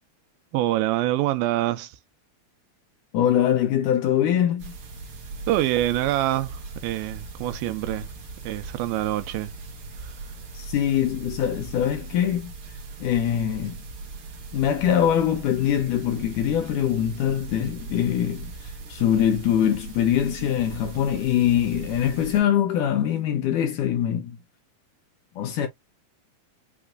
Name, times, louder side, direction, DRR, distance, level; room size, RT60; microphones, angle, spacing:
voice 1, 0.5-2.0 5.5-8.1 8.4-9.6 10.0-10.1, right 15 dB, 85° right, 2.5 m, -25 dB
voice 2, 3.1-4.7 10.6-12.5 13.0-13.8 14.5-24.4 25.4-25.7, left 10 dB, 80° left, 1.9 m, -23 dB
sound 1, 4.6-22.4, right 3 dB, 55° right, 1.5 m, -39 dB
6.0 x 3.1 x 2.4 m
omnidirectional pair, 4.3 m